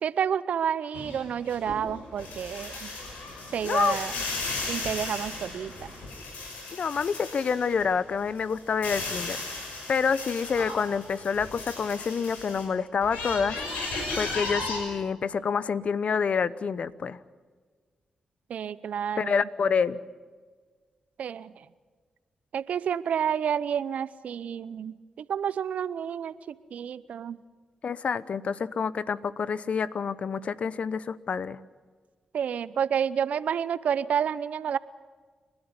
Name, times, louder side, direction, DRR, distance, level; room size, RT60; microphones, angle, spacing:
voice 1, 0.0-2.9 3.5-4.1 4.7-5.9 18.5-19.4 21.2-21.6 22.5-27.4 32.3-34.8, right 8 dB, 70° right, 17 dB, 0.8 m, -30 dB
sound 1, 0.9-7.9 8.3-12.6 13.0-14.8, left 3 dB, 80° left, 6.0 m, -36 dB
voice 2, 3.6-4.0 6.7-9.4 9.9-13.6 14.1-17.2 19.2-20.0 27.8-31.6, left 6 dB, 60° left, 17 dB, 0.9 m, -27 dB
30.0 x 12.5 x 9.8 m, 1.5 s
hypercardioid pair, 40°, 2 cm